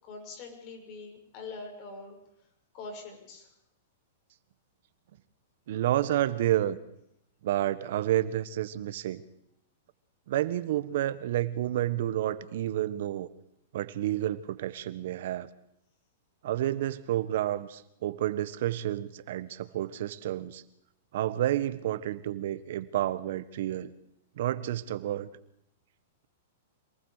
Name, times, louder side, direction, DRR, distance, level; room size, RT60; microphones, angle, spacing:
voice 1, 0.0-2.2 2.7-3.5, left 3 dB, 40° left, 3 dB, 6.2 m, -43 dB
voice 2, 5.7-6.8 7.4-9.2 10.3-13.3 13.7-15.5 16.4-20.6 21.1-23.9 24.4-25.3, right 13 dB, 65° right, 14 dB, 1.4 m, -30 dB
26.5 x 20.0 x 5.0 m, 0.80 s
hypercardioid pair, 135°, 0 cm